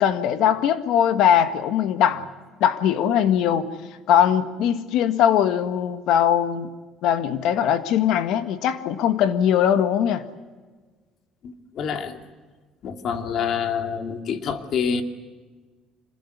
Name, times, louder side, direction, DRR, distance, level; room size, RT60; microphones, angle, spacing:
voice 1, 0.0-2.2 2.6-3.7 4.1-6.7 7.0-10.2, left 9 dB, 70° left, 10 dB, 1.7 m, -20 dB
voice 2, 11.4-12.2 12.8-15.0, left 7 dB, 55° left, 6 dB, 2.7 m, -27 dB
26.0 x 21.0 x 9.6 m, 1.3 s
cardioid pair, 125°, 0 cm